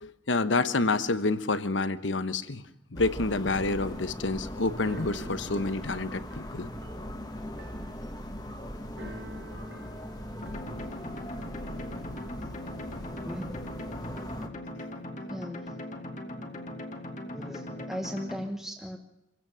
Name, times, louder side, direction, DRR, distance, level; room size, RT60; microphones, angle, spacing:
voice 1, 0.0-2.6 2.9-6.7, left 3 dB, 85° left, 13 dB, 1.1 m, -28 dB
sound 1, 2.9-14.5, left 1 dB, 20° left, 1.5 m, -40 dB
Keyboard (musical), 3.9-10.6, right 2 dB, 70° right, 1.8 m, -49 dB
sound 2, 10.4-18.4, left 1 dB, 40° left, 2.4 m, -40 dB
voice 2, 13.2-13.6 15.3-15.8 17.3-19.0, equal, ahead, 1 dB, 1.1 m, -37 dB
26.0 x 16.0 x 6.4 m, 0.90 s
head